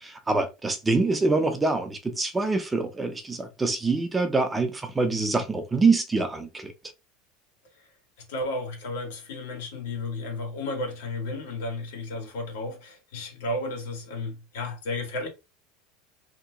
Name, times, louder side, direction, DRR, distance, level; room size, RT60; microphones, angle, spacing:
voice 1, 0.0-6.7, right 3 dB, 10° right, 0.5 m, -25 dB
voice 2, 8.3-15.3, left 2 dB, 90° left, 1.5 m, -33 dB
2.8 x 2.1 x 3.8 m
supercardioid pair, 145°, 0 cm